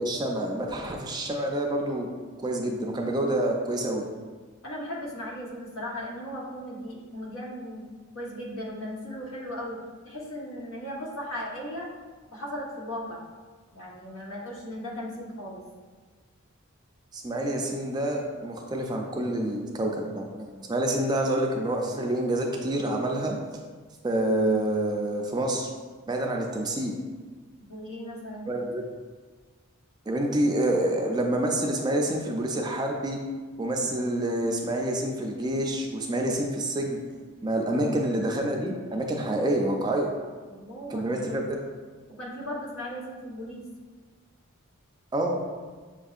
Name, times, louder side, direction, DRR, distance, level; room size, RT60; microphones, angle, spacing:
voice 1, 0.0-2.1 2.4-4.0 17.1-23.4 24.0-25.7 26.1-26.9 28.5-28.8 30.1-33.2 33.6-37.0 37.4-40.1 40.9-41.4 45.1-45.4, right 1 dB, 20° right, 1 dB, 0.4 m, -27 dB
voice 2, 4.6-7.8 8.1-9.8 10.0-11.9 12.3-13.2 13.7-15.6 27.7-28.5 37.7-38.1 40.5-41.5 42.1-43.6, equal, 75° left, -3 dB, 1.0 m, -37 dB
6.8 x 2.6 x 2.4 m, 1.5 s
head